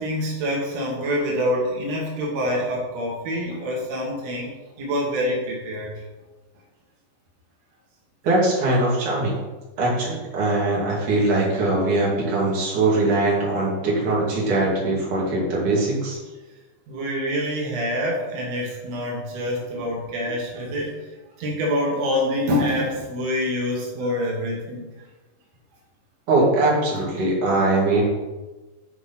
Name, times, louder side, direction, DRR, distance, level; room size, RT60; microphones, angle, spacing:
voice 1, 0.0-5.9 16.9-21.0 21.4-24.9, equal, 70° right, -3 dB, 1.6 m, -26 dB
voice 2, 8.2-9.3 9.8-16.2 26.3-28.0, right 2 dB, 50° right, -5 dB, 3.0 m, -21 dB
8.4 x 4.7 x 5.8 m, 1.2 s
omnidirectional pair, 5.6 m